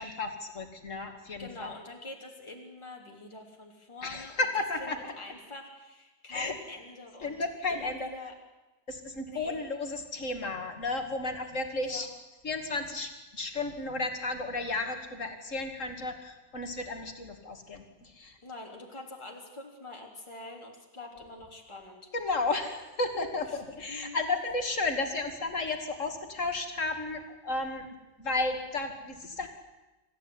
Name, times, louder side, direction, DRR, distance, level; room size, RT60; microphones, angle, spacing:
voice 1, 0.0-1.7 4.0-5.1 6.3-6.5 7.2-8.1 8.9-12.1 12.4-18.3 22.1-27.9 28.2-29.5, left 3 dB, 45° left, 5 dB, 2.8 m, -33 dB
voice 2, 1.4-4.5 4.8-7.4 7.7-8.3 9.3-9.6 11.8-12.1 18.4-22.0 23.5-23.6 23.9-24.2, left 2 dB, 15° left, 0 dB, 3.4 m, -45 dB
25.5 x 15.0 x 9.8 m, 1.1 s
omnidirectional pair, 1.9 m